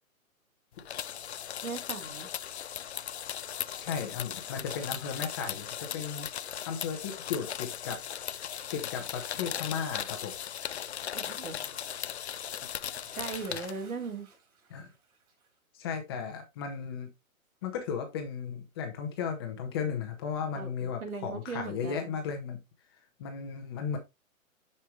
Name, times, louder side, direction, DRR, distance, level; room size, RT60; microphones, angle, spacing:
sound 1, 0.8-13.7, left 9 dB, 50° left, 0.5 m, -38 dB
voice 1, 1.6-2.3 11.1-11.8 13.2-14.3 20.5-22.2, right 4 dB, 80° right, 3.9 m, -39 dB
voice 2, 3.7-6.3 6.6-8.0 8.7-10.3 13.5-13.6 14.7-14.9 15.7-17.1 17.6-22.6 23.2-24.0, left 6 dB, 15° left, 1.0 m, -35 dB
Bathtub (filling or washing) / Splash splatter, 12.7-15.6 15.9-16.1 16.6-16.7, right 5 dB, 20° right, 5.0 m, -56 dB
9.3 x 5.6 x 3.2 m
hypercardioid pair, 160°, 42 cm